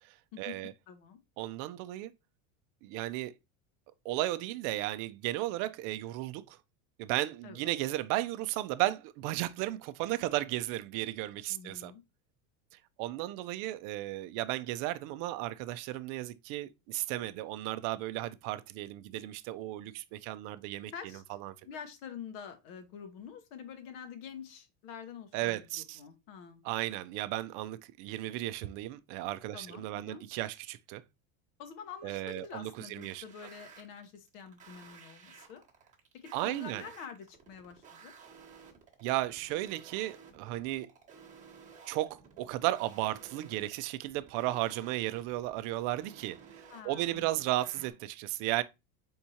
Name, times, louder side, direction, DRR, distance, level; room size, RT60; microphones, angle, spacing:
voice 1, 0.0-0.7 1.4-2.1 2.8-3.3 4.0-6.6 7.0-11.9 13.0-20.9 21.3-21.5 25.3-26.0 26.6-31.0 32.0-33.2 36.3-36.8 39.0-40.9 41.9-48.6, right 16 dB, 50° right, 0.4 m, -34 dB
voice 2, 0.9-1.2 7.4-7.6 11.5-12.0 20.9-21.2 21.6-26.6 29.5-30.2 31.6-35.6 36.2-38.1 46.7-47.3, left 7 dB, 70° left, 1.1 m, -47 dB
sound 1, 30.4-30.8 32.3-47.9, right 6 dB, 20° right, 1.0 m, -55 dB
4.3 x 3.6 x 2.8 m
supercardioid pair, 140°, 42 cm